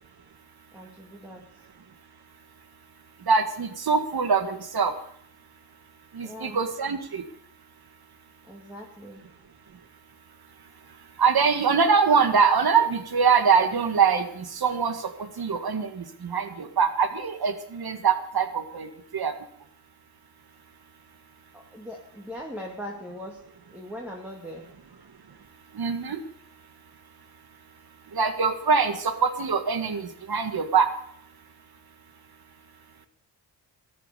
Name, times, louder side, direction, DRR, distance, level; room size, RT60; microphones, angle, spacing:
voice 1, 0.7-1.6 6.2-6.6 8.5-9.2 21.5-23.4 23.7-24.7, equal, 5° right, -1 dB, 2.3 m, -40 dB
voice 2, 3.3-4.9 6.1-7.2 11.2-19.3 25.7-26.2 28.1-30.9, right 5 dB, 55° right, 8 dB, 1.8 m, -23 dB
14.0 x 10.0 x 6.8 m, 0.68 s
cardioid pair, 70°, 43 cm